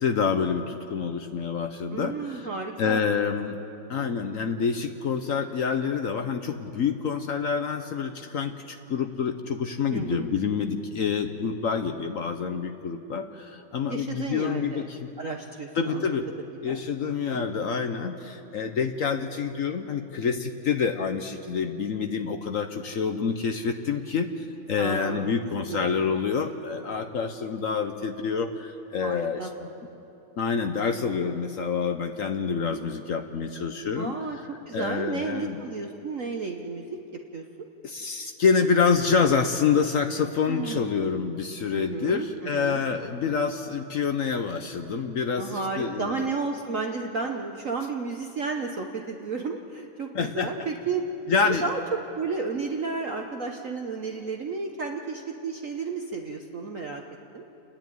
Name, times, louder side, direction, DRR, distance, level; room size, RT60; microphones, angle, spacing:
voice 1, 0.0-2.5 2.8-3.6 3.9-15.1 15.8-16.3 16.6-29.7 30.4-34.1 34.7-35.6 37.8-46.3 50.1-50.5 51.3-51.7, left 6 dB, 65° left, 6 dB, 0.8 m, -27 dB
voice 2, 1.9-3.0 9.9-10.3 13.9-14.9 15.2-16.2 16.6-16.8 17.0-17.5 24.8-25.4 25.7-25.9 29.0-29.5 34.0-34.4 34.7-36.9 37.3-37.4 40.5-41.0 41.7-42.8 45.4-51.1 51.4-51.8 52.1-57.0 57.3-57.4, right 4 dB, 50° right, 3 dB, 1.0 m, -32 dB
30.0 x 10.5 x 9.2 m, 2.9 s
omnidirectional pair, 2.3 m